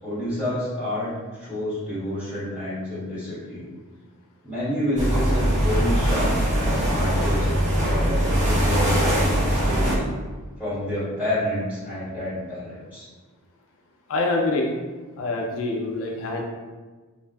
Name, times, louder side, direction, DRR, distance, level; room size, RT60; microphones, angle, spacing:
voice 1, 0.0-3.6 4.4-10.0 10.6-13.1, left 1 dB, 10° right, -12 dB, 1.3 m, -29 dB
sound 1, 5.0-10.0, equal, 35° right, 0.7 m, -21 dB
voice 2, 14.1-14.7 15.2-16.4, left 2 dB, 65° left, 0 dB, 0.3 m, -25 dB
2.5 x 2.4 x 2.2 m, 1.4 s
head